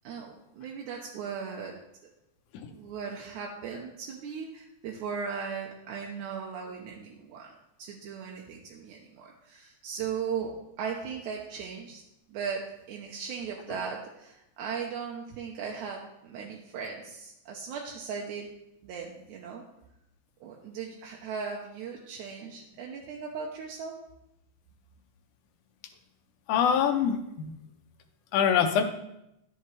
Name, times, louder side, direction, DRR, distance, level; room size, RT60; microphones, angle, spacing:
voice 1, 0.0-1.8 2.0-2.1 2.7-7.5 7.8-12.0 12.3-18.5 18.8-19.6 20.4-24.0, right 6 dB, 85° right, 0 dB, 2.1 m, -37 dB
voice 2, 26.5-27.5 28.3-28.8, left 8 dB, 80° left, 6 dB, 2.1 m, -25 dB
11.0 x 5.8 x 3.2 m, 0.84 s
omnidirectional pair, 3.5 m